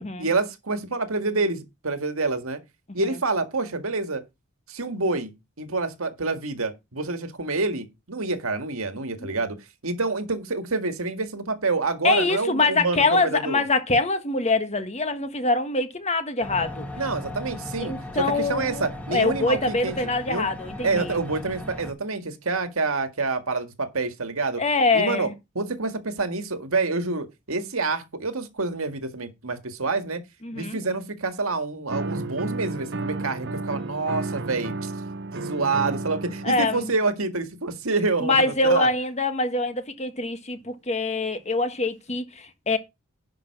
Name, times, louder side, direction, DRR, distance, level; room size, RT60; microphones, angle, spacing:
voice 1, 0.2-2.6 2.9-4.2 4.7-9.6 9.8-13.6 17.0-19.9 20.2-20.5 20.8-24.6 24.9-25.3 25.6-30.2 30.5-34.9 35.3-38.9, right 3 dB, 85° right, 1.9 m, -27 dB
voice 2, 12.0-16.9 17.8-21.2 24.6-25.3 30.4-30.8 36.4-36.9 38.2-42.8, left 3 dB, 30° left, 1.5 m, -24 dB
sound 1, 16.4-21.9, left 1 dB, 5° left, 1.9 m, -37 dB
sound 2, 31.9-36.9, right 2 dB, 55° right, 1.0 m, -32 dB
11.0 x 6.1 x 5.9 m
head